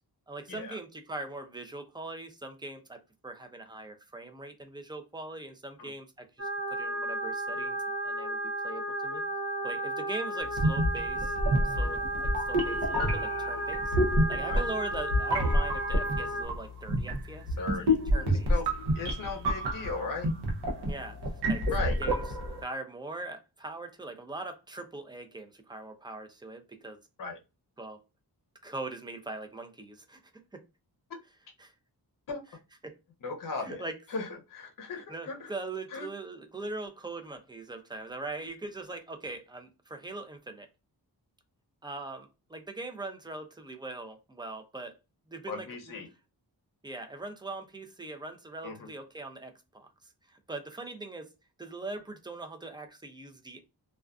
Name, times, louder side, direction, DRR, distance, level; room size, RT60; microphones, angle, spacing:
voice 1, 0.3-7.8 8.0-8.4 8.6-9.2 9.6-11.4 11.6-14.0 14.3-17.6 18.1-18.5 20.9-27.0 27.8-28.0 28.6-30.2 30.5-30.6 31.6-31.7 32.8-32.9 33.6-34.0 35.1-40.7 41.8-45.0 45.3-46.0 46.8-51.3 51.6-53.6, right 2 dB, 10° right, 0.4 m, -41 dB
sound 1, 6.4-16.5, right 1 dB, 35° right, 0.9 m, -33 dB
sound 2, 10.5-22.6, equal, 85° right, 0.7 m, -29 dB
voice 2, 17.6-18.0 18.3-18.7 18.9-20.3 21.7-22.0 27.2-27.4 31.1-31.2 32.3-32.4 33.2-33.8 34.1-35.5 35.9-36.1 45.5-46.1 48.6-48.9, left 4 dB, 55° left, 0.6 m, -37 dB
2.4 x 2.3 x 2.3 m
wide cardioid pair, 115°, 39 cm